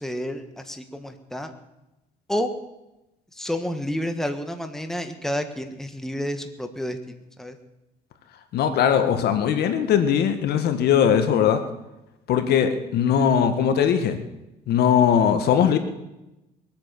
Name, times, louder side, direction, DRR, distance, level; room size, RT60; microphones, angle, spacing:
voice 1, 0.0-1.5 2.3-2.5 3.3-7.6, equal, ahead, 6 dB, 1.5 m, -30 dB
voice 2, 8.5-11.6 12.3-14.2 14.7-15.8, left 8 dB, 70° left, 8 dB, 1.7 m, -20 dB
22.0 x 9.0 x 6.8 m, 0.95 s
cardioid pair, 110°, 17 cm